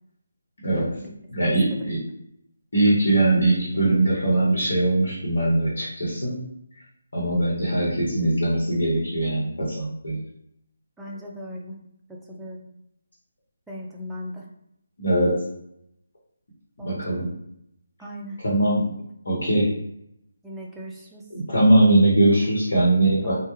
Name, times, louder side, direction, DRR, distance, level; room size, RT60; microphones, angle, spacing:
voice 1, 0.6-1.0 1.3-2.0 2.7-6.3 7.1-10.2 15.0-15.3 16.8-17.3 18.4-18.8 19.2-19.7 21.3-23.4, right 1 dB, 75° left, -6 dB, 1.0 m, -21 dB
voice 2, 1.4-1.9 11.0-11.8 12.1-12.7 13.7-14.5 16.8-17.2 18.0-18.4 20.4-21.3 22.9-23.3, equal, 5° right, -4 dB, 0.4 m, -38 dB
2.2 x 2.1 x 3.2 m, 0.76 s
figure-of-eight pair, 155°, 0 cm